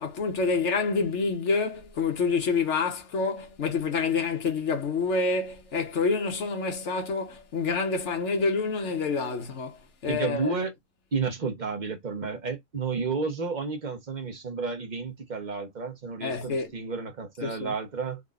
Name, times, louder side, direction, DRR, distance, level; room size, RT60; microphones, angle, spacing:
voice 1, 0.0-10.5 16.2-16.7 17.4-17.7, left 4 dB, 60° left, 1.3 m, -27 dB
voice 2, 10.1-10.7 11.1-18.2, right 4 dB, 35° right, 1.1 m, -31 dB
3.8 x 2.8 x 2.4 m
omnidirectional pair, 1.4 m